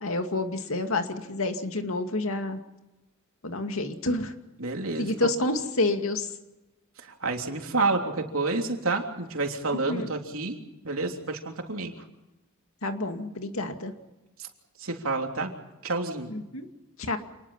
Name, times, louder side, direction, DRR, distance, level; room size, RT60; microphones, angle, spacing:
voice 1, 0.0-2.6 3.4-4.3 5.0-6.3 9.9-10.1 12.8-13.9 16.5-16.7 17.0-17.2, left 2 dB, 70° left, 6 dB, 2.4 m, -28 dB
voice 2, 4.6-5.3 7.0-10.6 10.8-11.9 14.4-14.5 14.8-15.5 15.8-16.3, right 3 dB, 75° right, 3 dB, 3.4 m, -29 dB
28.0 x 20.0 x 5.8 m, 1.0 s
head